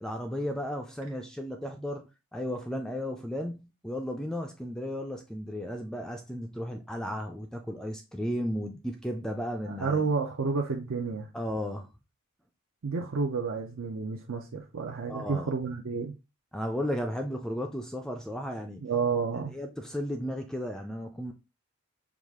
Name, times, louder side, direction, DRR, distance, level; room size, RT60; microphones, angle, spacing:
voice 1, 0.0-2.1 2.3-10.0 11.3-11.9 15.1-15.5 16.5-18.8 19.5-21.3, equal, 5° left, 0.3 m, -34 dB
voice 2, 9.7-11.3 12.8-16.1 18.8-19.5, right 5 dB, 70° right, 0.6 m, -30 dB
4.8 x 2.4 x 3.5 m
head